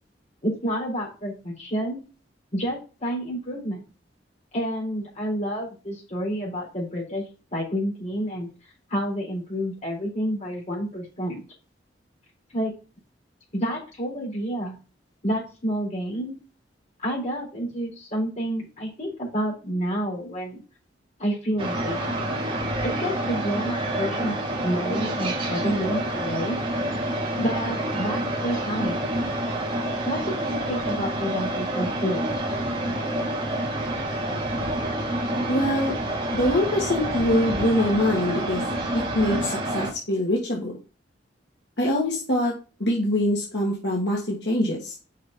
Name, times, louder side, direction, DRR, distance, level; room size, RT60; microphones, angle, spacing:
voice 1, 0.4-2.0 2.5-3.8 4.5-7.2 7.5-8.5 8.9-11.4 12.5-12.7 13.5-14.8 15.2-16.4 17.0-20.6 21.2-22.1 22.8-24.4 24.6-26.6 27.2-29.1 30.0-32.2, equal, 40° left, -1 dB, 3.8 m, -29 dB
sound 1, 21.6-39.9, right 1 dB, 30° right, 2.4 m, -28 dB
voice 2, 35.5-35.9 36.3-38.6 38.9-40.7 41.8-42.5 42.8-44.9, left 1 dB, 70° left, -2 dB, 1.8 m, -24 dB
6.5 x 5.4 x 3.8 m, 0.34 s
head